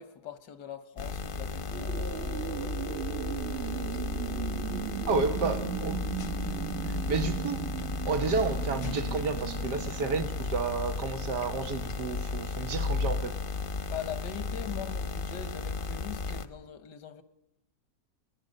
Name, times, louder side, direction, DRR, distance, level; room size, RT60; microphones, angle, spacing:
voice 1, 0.0-3.1 13.9-17.2, left 9 dB, 85° left, 1.9 m, -42 dB
sound 1, 1.0-16.5, left 4 dB, 40° left, 0.9 m, -34 dB
sound 2, 1.7-10.3, right 10 dB, 45° right, 1.1 m, -37 dB
voice 2, 5.1-6.0 6.5-7.7 8.1-13.4, right 4 dB, 80° right, 1.9 m, -31 dB
21.0 x 20.0 x 6.6 m
omnidirectional pair, 1.8 m